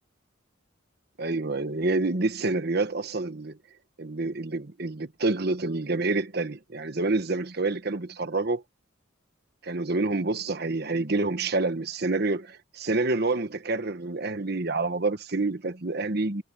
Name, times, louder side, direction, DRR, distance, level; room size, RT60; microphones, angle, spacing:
voice 1, 1.2-3.6 4.0-8.6 9.6-16.4, right 3 dB, 55° right, 1.3 m, -28 dB
head